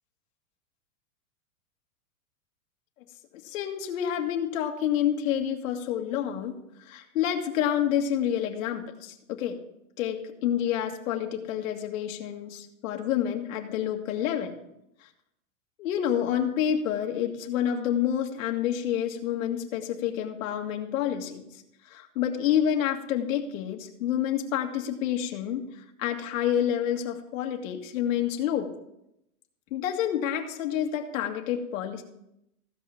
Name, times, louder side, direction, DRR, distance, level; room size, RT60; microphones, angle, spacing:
voice 1, 3.4-6.6 6.8-9.6 10.0-14.6 15.8-21.4 21.8-28.7 29.7-32.0, left 10 dB, 65° left, 2 dB, 2.0 m, -28 dB
15.0 x 5.7 x 7.0 m, 0.81 s
supercardioid pair, 160°, 44 cm